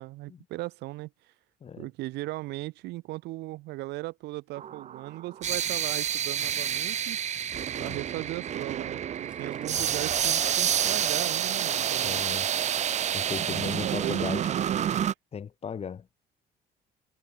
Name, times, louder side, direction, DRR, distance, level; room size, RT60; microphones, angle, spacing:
voice 1, 0.0-1.3 1.8-7.2 7.8-12.2 13.6-15.1, right 19 dB, 85° right, 0.9 m, -38 dB
sound 1, 4.6-15.1, right 9 dB, 45° right, 0.7 m, -29 dB
Engine starting, 6.8-6.9 8.5-8.6 9.1-12.3, right 1 dB, 5° right, 5.0 m, -51 dB
voice 2, 12.0-12.5 13.1-14.5 15.3-16.2, left 7 dB, 35° left, 1.6 m, -37 dB
cardioid pair, 110°, 17 cm